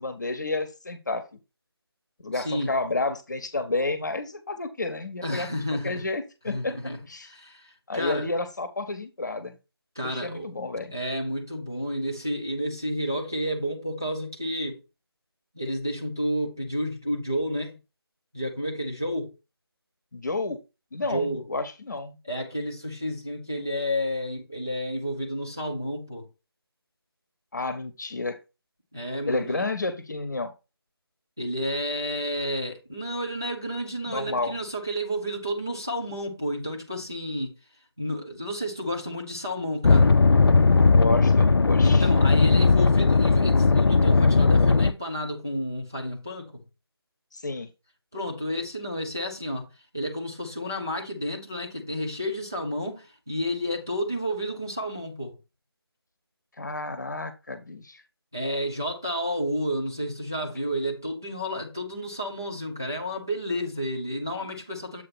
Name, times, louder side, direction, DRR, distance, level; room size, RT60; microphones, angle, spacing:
voice 1, 0.0-1.4 2.2-6.8 7.1-7.3 7.9-9.6 10.0-10.9 20.1-20.6 20.9-22.2 27.5-28.4 29.3-30.5 34.1-34.5 40.9-42.1 47.3-47.7 56.6-58.0, left 3 dB, 45° left, 1.0 m, -30 dB
voice 2, 2.3-2.7 5.2-6.0 6.5-7.0 7.2-8.3 10.0-10.5 10.9-14.8 15.5-17.8 18.3-19.3 21.1-21.4 22.2-26.3 28.9-29.6 31.4-37.6 38.0-40.1 41.8-46.6 48.1-49.7 49.9-55.4 58.3-65.0, equal, 10° right, 0.4 m, -31 dB
sound 1, 39.8-44.9, left 4 dB, 65° left, 0.5 m, -18 dB
7.6 x 2.8 x 6.0 m
figure-of-eight pair, 165°, 13 cm